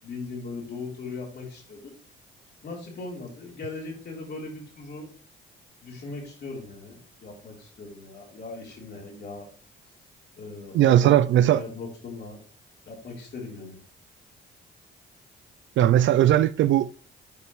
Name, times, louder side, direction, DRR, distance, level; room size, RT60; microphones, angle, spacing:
voice 1, 0.0-1.9 2.6-5.1 5.8-9.5 10.4-12.4 12.9-13.8, left 3 dB, 55° left, 3.6 m, -39 dB
voice 2, 10.7-11.6 15.8-17.0, right 12 dB, 70° right, 0.4 m, -19 dB
8.7 x 5.3 x 3.1 m
cardioid pair, 90°, 20 cm